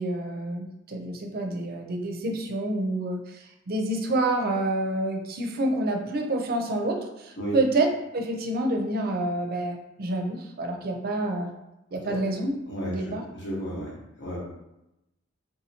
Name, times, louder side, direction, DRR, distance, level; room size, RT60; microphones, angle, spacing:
voice 1, 0.0-7.9 8.1-11.5 11.9-12.6 12.8-13.2, right 2 dB, 50° right, 3 dB, 0.5 m, -28 dB
voice 2, 12.7-13.9 14.2-14.4, equal, 60° left, -4 dB, 1.2 m, -33 dB
3.6 x 2.7 x 2.8 m, 0.91 s
head